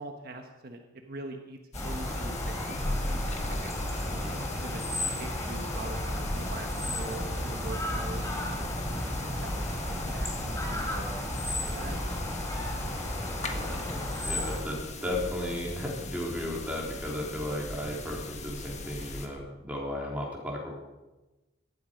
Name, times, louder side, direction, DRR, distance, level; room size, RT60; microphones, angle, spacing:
voice 1, 0.0-3.0 3.4-3.7 4.2-8.7 9.2-11.2 11.6-12.2 13.3-13.8, right 2 dB, 50° right, 3 dB, 1.3 m, -43 dB
sound 1, 1.7-19.3, left 2 dB, 35° left, 1.6 m, -38 dB
sound 2, 1.7-14.6, left 1 dB, 15° left, 3.0 m, -33 dB
voice 2, 4.0-4.4 13.5-20.7, left 1 dB, 10° right, -3 dB, 3.5 m, -35 dB
18.0 x 12.5 x 5.2 m, 1.1 s
head